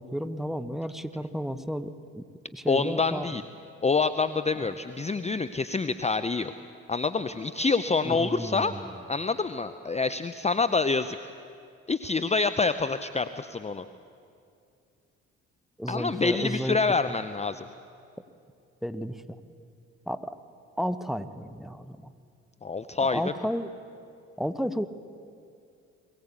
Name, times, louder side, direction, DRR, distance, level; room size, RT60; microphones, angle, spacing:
voice 1, 0.0-2.2 2.5-3.4 4.5-4.7 8.0-8.9 15.8-16.8 18.8-19.4 20.1-20.4 20.8-22.1 23.0-23.7 24.4-24.9, equal, ahead, 12 dB, 1.1 m, -32 dB
voice 2, 2.7-3.4 3.8-6.5 6.9-8.7 9.1-11.3 11.9-13.8 15.9-17.6 22.6-23.2, left 4 dB, 20° left, 11 dB, 0.7 m, -27 dB
22.0 x 16.5 x 8.3 m, 2.4 s
hypercardioid pair, 50°, 35 cm